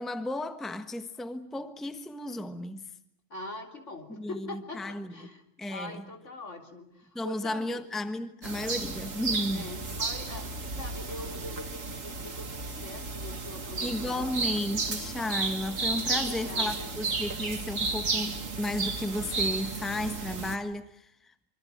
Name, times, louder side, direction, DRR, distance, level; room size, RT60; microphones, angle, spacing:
voice 1, 0.0-2.9 4.2-5.3 5.6-6.0 7.1-9.7 13.8-21.3, left 1 dB, ahead, 1.3 m, -34 dB
voice 2, 3.3-7.8 9.5-14.4 15.9-16.9, left 2 dB, 65° left, 3.8 m, -43 dB
sound 1, 8.4-20.6, right 4 dB, 90° right, 2.4 m, -33 dB
26.0 x 25.0 x 7.7 m
omnidirectional pair, 1.3 m